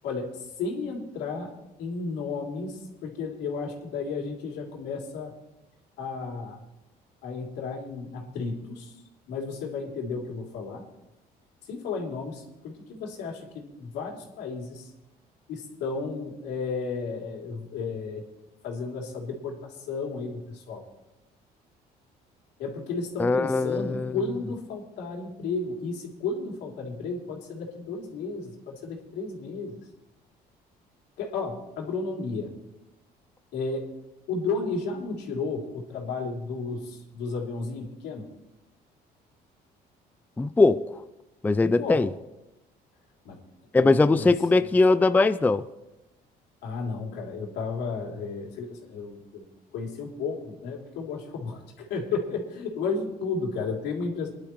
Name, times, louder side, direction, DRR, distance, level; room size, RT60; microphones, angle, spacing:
voice 1, 0.0-1.5 1.8-5.4 6.0-6.6 7.2-9.0 9.3-10.8 11.6-14.9 15.5-18.3 18.6-20.8 22.6-29.8 31.2-32.5 33.5-33.9 34.3-38.3 41.6-42.0 43.2-43.4 43.8-44.3 46.6-49.5 49.7-54.3, left 4 dB, 85° left, 3.1 m, -33 dB
voice 2, 23.2-24.1 40.4-40.9 41.4-42.1 43.7-45.6, left 3 dB, 10° left, 0.4 m, -21 dB
22.5 x 11.5 x 3.1 m
cardioid pair, 110°, 17 cm